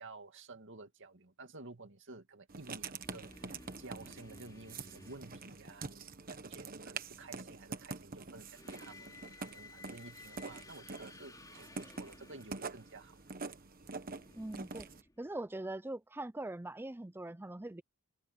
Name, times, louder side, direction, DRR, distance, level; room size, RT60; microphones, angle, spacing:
voice 1, 0.0-13.2, right 3 dB, 55° right, 2.4 m, -52 dB
Writing, 2.5-15.0, right 4 dB, 40° right, 1.3 m, -46 dB
sound 1, 3.0-6.3 8.3-15.6, left 3 dB, 15° left, 3.2 m, -57 dB
voice 2, 14.3-14.9 15.2-17.8, right 2 dB, 10° right, 0.5 m, -42 dB
head